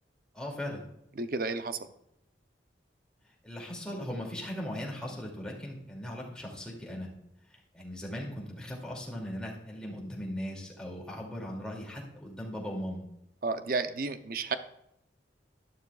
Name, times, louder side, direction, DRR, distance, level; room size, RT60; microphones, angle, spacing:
voice 1, 0.3-0.8 3.4-7.1 7.5-13.0, equal, 5° left, -2 dB, 2.5 m, -38 dB
voice 2, 1.2-1.8 13.4-14.6, right 3 dB, 55° right, 10 dB, 0.6 m, -32 dB
12.0 x 11.5 x 2.4 m, 0.79 s
head